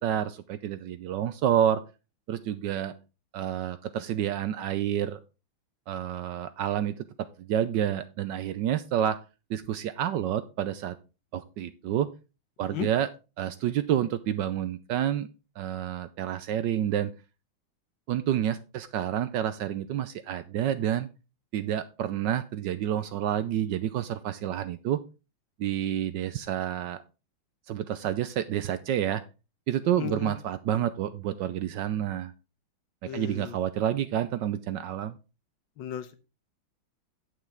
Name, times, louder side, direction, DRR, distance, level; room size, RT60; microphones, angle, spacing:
voice 1, 0.0-1.8 2.3-2.9 3.3-5.2 5.9-9.2 9.5-11.0 11.3-12.1 12.6-13.1 13.4-15.3 15.6-17.1 18.1-21.1 21.5-25.0 25.6-27.0 27.7-29.2 29.7-32.3 33.0-35.2, right 10 dB, 75° right, 13 dB, 1.1 m, -29 dB
voice 2, 29.9-30.3 33.0-33.5 35.8-36.1, left 10 dB, 70° left, 11 dB, 1.5 m, -35 dB
8.8 x 7.7 x 3.5 m, 0.30 s
omnidirectional pair, 2.3 m